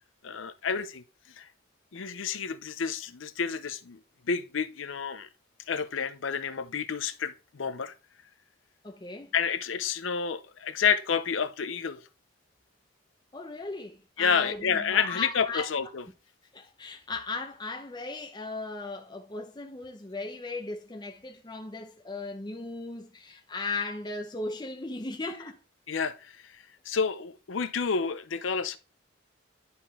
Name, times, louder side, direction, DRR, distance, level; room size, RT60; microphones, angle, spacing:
voice 1, 0.2-1.0 1.4-1.5 1.9-4.0 4.3-5.3 5.7-7.9 9.3-12.0 14.2-16.0 25.9-28.8, left 6 dB, 85° left, 0.6 m, -30 dB
voice 2, 8.8-9.3 13.3-15.7 16.5-25.6, left 3 dB, 20° left, 0.8 m, -37 dB
11.0 x 4.3 x 3.7 m
head